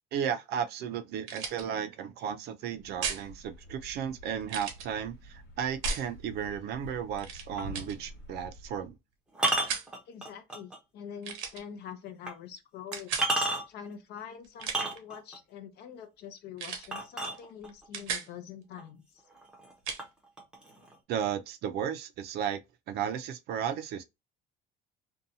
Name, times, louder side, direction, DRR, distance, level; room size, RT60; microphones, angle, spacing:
voice 1, 0.1-8.9 21.1-22.6 22.9-24.0, right 8 dB, 55° right, 0.4 m, -34 dB
sound 1, 1.2-1.6 3.0-3.3 4.5-4.9 5.8-6.1 7.2-7.5 7.7-8.0 9.5-9.9 11.2-11.6 12.9-13.3 14.4-15.0 16.6-16.9 17.2-17.4 17.7-18.3 19.9-20.0, right 6 dB, 90° right, 0.8 m, -35 dB
Thump thud, 2.7-9.0, equal, 80° left, 1.4 m, -48 dB
sound 2, 7.6-7.8 9.3-10.8 11.3-11.4 12.3-12.4 12.9-13.9 14.6-15.4 16.9-17.9 18.8-18.9 19.3-19.7 20.0-20.9, right 2 dB, 5° right, 0.7 m, -31 dB
voice 2, 10.1-13.1 13.4-19.2, left 8 dB, 55° left, 0.6 m, -45 dB
2.7 x 2.2 x 2.6 m
cardioid pair, 155°, 20 cm